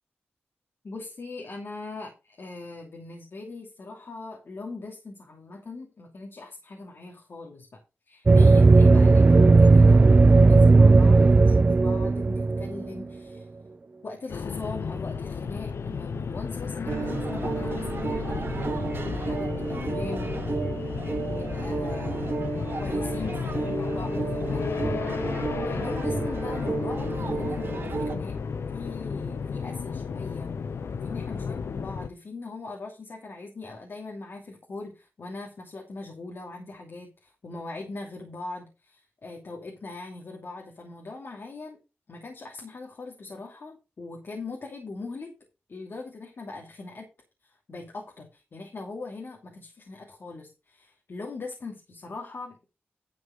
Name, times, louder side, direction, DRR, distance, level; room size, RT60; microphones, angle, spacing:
voice 1, 0.8-10.0 10.3-13.5 14.0-20.4 21.2-22.3 22.8-25.1 25.6-28.4 28.7-30.5 31.0-41.8 42.1-45.3 45.7-47.1 47.4-52.7, left 3 dB, 65° left, 0 dB, 2.7 m, -40 dB
sound 1, 8.3-13.0, right 3 dB, 35° right, 0.5 m, -16 dB
sound 2, 14.3-32.1, left 5 dB, 80° left, 0.8 m, -33 dB
sound 3, 16.9-28.2, right 4 dB, 60° right, 2.1 m, -32 dB
11.0 x 5.5 x 5.6 m, 0.28 s
cardioid pair, 55°, 4 cm